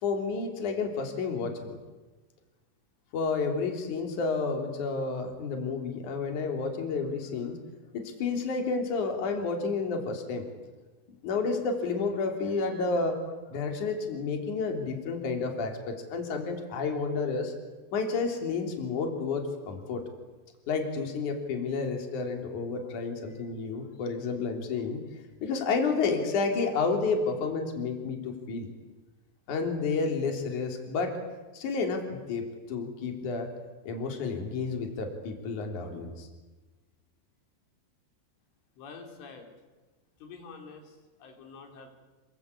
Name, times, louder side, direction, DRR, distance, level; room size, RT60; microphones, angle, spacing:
voice 1, 0.0-1.8 3.1-7.6 7.9-10.5 11.2-13.1 13.5-17.5 17.9-20.0 20.7-25.0 25.4-28.7 29.5-31.2 31.5-33.5 33.9-36.3, left 4 dB, 45° left, 3 dB, 4.4 m, -30 dB
voice 2, 38.8-39.5 40.2-41.9, left 4 dB, 85° left, 3 dB, 6.1 m, -47 dB
27.5 x 24.0 x 8.6 m, 1.2 s
omnidirectional pair, 5.4 m